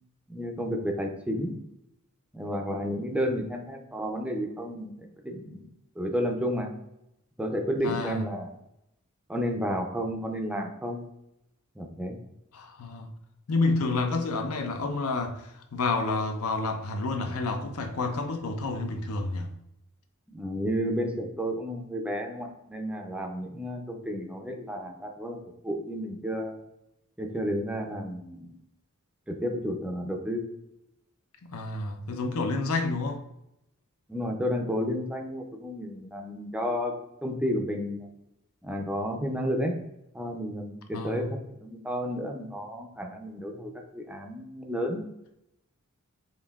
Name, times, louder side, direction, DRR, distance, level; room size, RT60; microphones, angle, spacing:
voice 1, 0.3-1.5 2.3-4.9 5.2-5.7 6.0-6.7 7.4-8.5 9.3-11.0 11.8-12.2 20.3-25.4 25.6-26.6 27.2-28.5 29.3-30.4 34.1-36.9 37.2-38.1 38.6-39.7 40.1-45.0, equal, 5° right, 0.4 m, -31 dB
voice 2, 7.8-8.2 12.5-13.1 13.5-19.5 31.4-33.2 40.9-41.3, left 3 dB, 75° left, 0.5 m, -29 dB
5.4 x 2.5 x 2.3 m
head